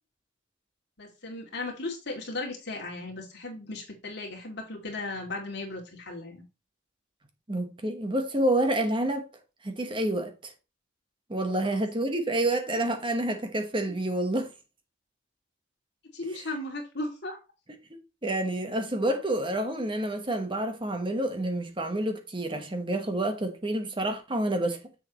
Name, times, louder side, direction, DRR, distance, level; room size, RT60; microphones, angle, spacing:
voice 1, 1.0-6.5 11.6-11.8 13.9-14.0 16.1-17.4, left 2 dB, 60° left, 2.5 m, -36 dB
voice 2, 7.5-9.3 9.6-10.5 11.3-14.5 17.9-24.8, right 1 dB, 25° right, 1.2 m, -28 dB
7.7 x 7.0 x 3.0 m
head